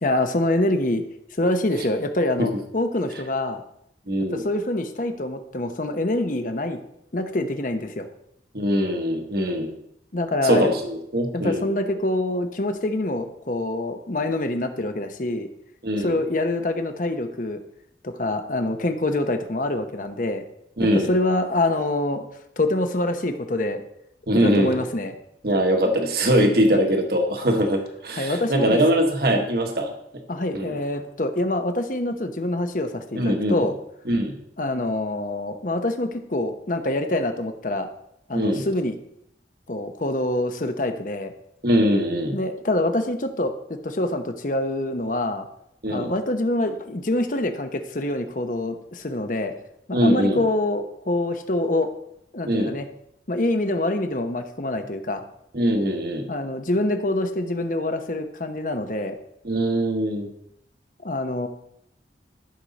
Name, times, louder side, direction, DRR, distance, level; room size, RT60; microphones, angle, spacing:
voice 1, 0.0-1.0 1.4-3.6 4.3-6.8 7.1-8.1 10.1-10.7 11.3-15.5 15.9-17.6 18.0-20.4 21.1-22.2 22.6-23.8 24.3-25.2 28.1-28.8 30.3-33.7 34.6-37.9 38.3-39.0 39.7-41.3 42.3-45.5 45.9-49.5 49.9-51.9 52.3-52.9 53.3-55.2 56.3-59.2 61.0-61.5, left 1 dB, 45° left, 7 dB, 0.9 m, -25 dB
voice 2, 4.1-4.4 8.5-9.7 10.4-11.7 15.8-16.2 20.8-21.1 24.3-24.8 25.4-29.9 30.5-30.8 33.1-33.6 34.1-34.4 38.3-38.6 41.6-42.4 45.8-46.1 49.9-50.4 52.5-52.7 55.5-56.3 59.4-60.3, equal, 55° right, 3 dB, 1.3 m, -22 dB
13.5 x 6.3 x 4.1 m, 0.77 s
head